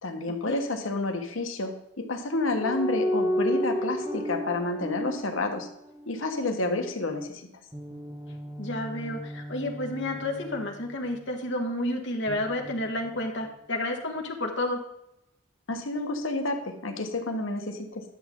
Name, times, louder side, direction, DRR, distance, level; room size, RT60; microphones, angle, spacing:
voice 1, 0.0-5.7 6.1-7.5 15.7-18.0, left 2 dB, 85° left, 5 dB, 1.4 m, -30 dB
sound 1, 2.6-6.3 7.7-11.5 12.3-13.5, equal, 20° right, 1.4 m, -33 dB
voice 2, 8.6-14.8, left 1 dB, 60° left, 1 dB, 1.7 m, -31 dB
11.5 x 7.3 x 3.8 m, 0.81 s
head